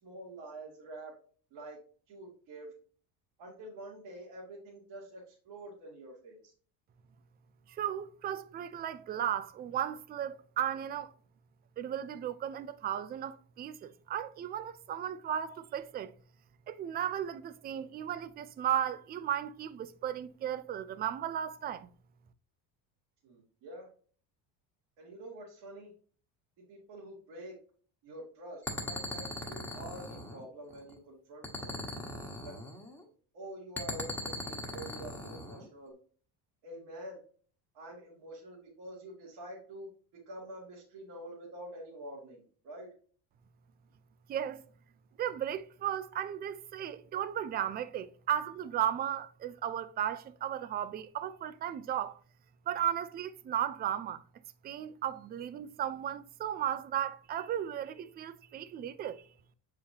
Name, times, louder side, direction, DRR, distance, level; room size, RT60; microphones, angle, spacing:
voice 1, 0.0-1.1 1.5-1.8 2.1-2.7 3.4-6.5 23.2-23.9 25.0-25.9 26.7-27.6 28.0-31.7 32.4-32.5 33.3-36.0 36.6-37.2 37.7-39.9 40.3-42.9, right 1 dB, 65° right, 2.4 m, -47 dB
voice 2, 7.7-11.1 11.8-16.1 16.7-21.9 44.3-44.6 45.2-52.2 52.7-54.2 54.6-59.2, right 10 dB, 25° right, 0.3 m, -35 dB
sound 1, 28.6-30.9 31.4-33.0 33.8-35.7, left 1 dB, 5° left, 1.2 m, -40 dB
7.0 x 4.9 x 2.8 m
cardioid pair, 125°, 45 cm